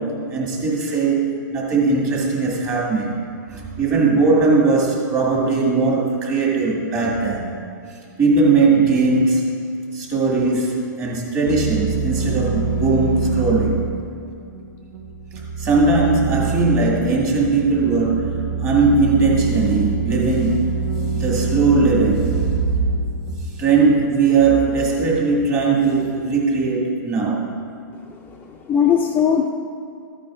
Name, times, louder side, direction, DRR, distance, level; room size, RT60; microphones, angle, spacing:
voice 1, 0.0-3.2 3.5-7.6 7.9-13.9 15.6-20.8 21.1-22.5 23.4-27.5, right 3 dB, 25° right, -3 dB, 2.1 m, -19 dB
sound 1, 11.5-23.9, right 4 dB, 75° right, 1.8 m, -25 dB
voice 2, 28.2-29.5, left 8 dB, 15° left, 1 dB, 0.4 m, -19 dB
13.5 x 9.0 x 2.6 m, 2.4 s
hypercardioid pair, 140°, 11 cm